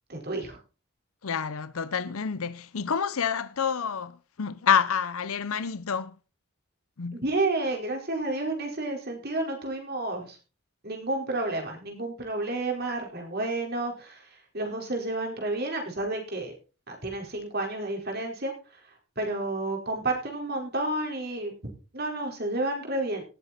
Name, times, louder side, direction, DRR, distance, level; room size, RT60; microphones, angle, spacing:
voice 1, 0.1-0.6 7.1-10.4 10.8-14.2 14.5-16.5 16.9-18.5 19.2-23.2, right 2 dB, 45° right, 4.6 m, -30 dB
voice 2, 1.2-6.2 7.0-7.2, left 7 dB, 70° left, 0.7 m, -28 dB
18.5 x 8.1 x 4.3 m
head